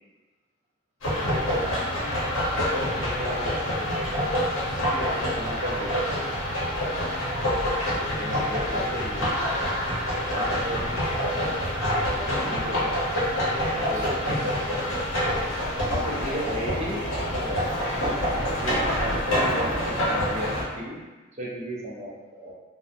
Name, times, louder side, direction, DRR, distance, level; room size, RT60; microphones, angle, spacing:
sound 1, 1.0-20.6, equal, 70° left, 0.7 m, -26 dB
voice 1, 1.1-1.7 2.7-4.1 4.5-4.6 4.9-6.1 7.9-9.7 10.1-11.0 12.0-13.0 13.5-14.8 15.8-17.6 17.9-20.5 20.8-21.0 21.4-22.5, equal, 35° right, -5 dB, 0.5 m, -35 dB
2.8 x 2.0 x 2.4 m, 1.2 s
head